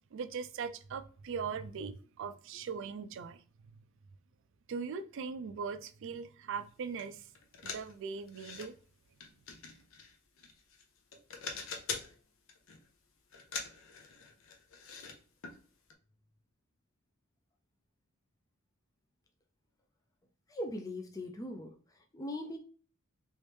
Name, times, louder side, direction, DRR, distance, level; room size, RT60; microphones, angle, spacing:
voice 1, 0.1-3.4 4.7-7.3 7.6-8.7, right 5 dB, 60° right, 0.3 m, -40 dB
sound 1, 7.0-7.1 7.3-8.7 9.2-10.8 11.1-12.1 12.5-12.9 13.3-15.1 15.4-15.6 15.9-16.0, left 5 dB, 65° left, 0.7 m, -43 dB
voice 2, 20.5-22.6, left 1 dB, 15° left, 0.4 m, -40 dB
3.1 x 3.1 x 3.2 m
head